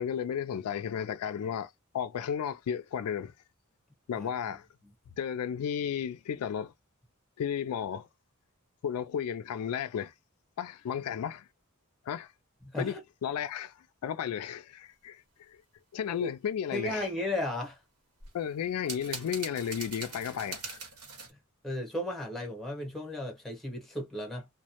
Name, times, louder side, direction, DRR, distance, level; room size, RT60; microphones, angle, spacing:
voice 1, 0.0-3.3 4.1-4.7 5.2-6.7 7.4-8.1 8.8-10.1 10.6-11.5 12.1-12.3 12.8-15.6 15.9-17.1 18.3-20.8, left 8 dB, 90° left, 0.3 m, -34 dB
voice 2, 12.6-13.0 16.2-16.3 16.7-17.8 21.3-21.4 21.6-24.5, left 1 dB, ahead, 0.8 m, -35 dB
sound 1, 18.2-21.3, right 4 dB, 90° right, 1.0 m, -41 dB
2.1 x 2.0 x 2.8 m
head